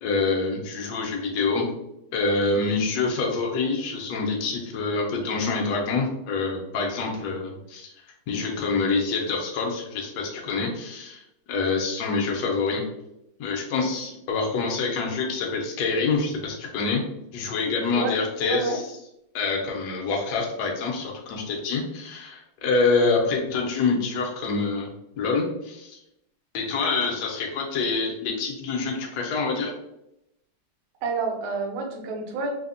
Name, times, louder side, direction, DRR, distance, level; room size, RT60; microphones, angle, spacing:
voice 1, 0.0-1.7 2.1-7.9 8.3-11.2 11.5-12.8 13.4-17.0 17.3-19.0 19.3-24.9 25.2-26.0 26.5-29.7, left 4 dB, 75° left, -1 dB, 0.9 m, -26 dB
voice 2, 18.4-18.8 31.0-32.5, right 4 dB, 70° right, 1 dB, 1.2 m, -29 dB
3.4 x 2.1 x 2.4 m, 0.85 s
omnidirectional pair, 2.3 m